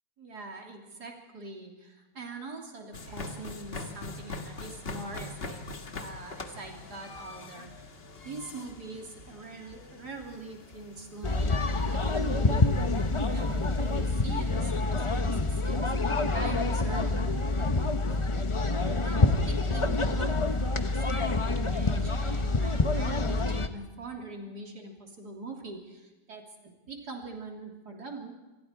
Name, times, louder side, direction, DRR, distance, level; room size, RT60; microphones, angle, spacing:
voice 1, 0.2-5.6 6.0-7.9 8.2-12.9 13.2-17.7 18.1-18.3 18.9-26.4 26.9-28.4, right 3 dB, 80° right, 1 dB, 3.8 m, -43 dB
sound 1, 2.9-14.9, left 3 dB, 40° left, 1.6 m, -44 dB
sound 2, 11.2-23.7, left 3 dB, 25° left, 0.8 m, -27 dB
27.5 x 20.5 x 4.7 m, 1.1 s
omnidirectional pair, 1.7 m